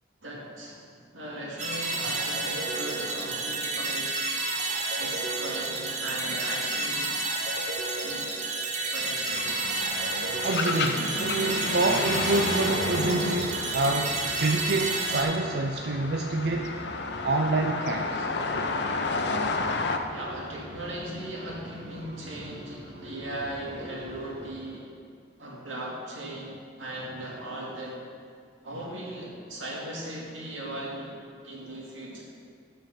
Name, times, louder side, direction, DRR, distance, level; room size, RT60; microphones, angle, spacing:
voice 1, 0.2-0.9 1.1-4.2 5.0-7.2 8.0-8.3 8.9-9.5 20.1-24.9 25.4-28.0 28.6-32.2, right 1 dB, 90° right, -4 dB, 2.2 m, -38 dB
sound 1, 1.6-15.2, right 3 dB, 40° right, 0.9 m, -30 dB
sound 2, 9.3-20.0, left 3 dB, 60° left, 0.6 m, -32 dB
voice 2, 10.4-16.8 17.2-18.3, right 2 dB, 55° right, 2 dB, 0.5 m, -27 dB
sound 3, 12.1-24.5, equal, 10° right, 2.5 m, -45 dB
13.5 x 4.5 x 5.2 m, 2.2 s
head